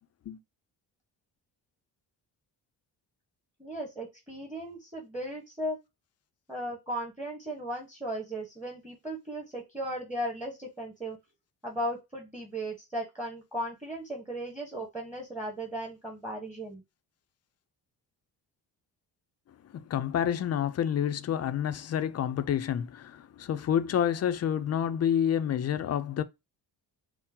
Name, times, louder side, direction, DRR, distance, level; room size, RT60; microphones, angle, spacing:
voice 1, 3.6-5.8 6.5-11.2 11.6-16.8, right 1 dB, 5° right, 1.1 m, -36 dB
voice 2, 19.7-26.2, left 9 dB, 40° left, 0.4 m, -28 dB
4.4 x 2.0 x 3.6 m
cardioid pair, 115°, 40 cm